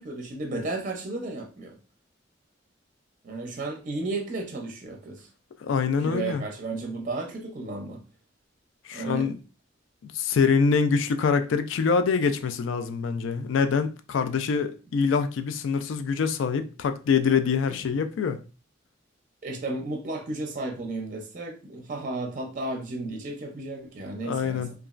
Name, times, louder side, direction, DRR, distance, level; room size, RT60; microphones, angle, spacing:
voice 1, 0.0-1.8 3.2-5.3 6.0-8.0 8.9-9.3 19.4-24.7, right 2 dB, 45° right, 0.5 m, -33 dB
voice 2, 5.6-6.5 8.8-9.4 10.0-18.4 24.2-24.7, left 5 dB, 70° left, 0.3 m, -25 dB
2.9 x 2.3 x 2.4 m
head